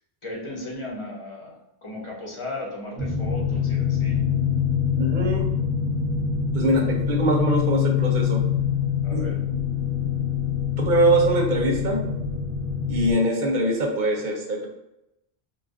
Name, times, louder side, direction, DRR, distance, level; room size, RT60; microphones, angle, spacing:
voice 1, 0.2-4.2 9.0-9.5, left 2 dB, 30° left, -3 dB, 0.8 m, -36 dB
sound 1, 3.0-13.1, left 8 dB, 5° right, 0.7 m, -25 dB
voice 2, 5.0-5.5 6.5-8.5 9.1-9.2 9.5-9.6 10.8-12.1 12.9-14.7, right 1 dB, 55° right, 0 dB, 0.6 m, -23 dB
3.9 x 2.3 x 2.4 m, 0.88 s
omnidirectional pair, 1.1 m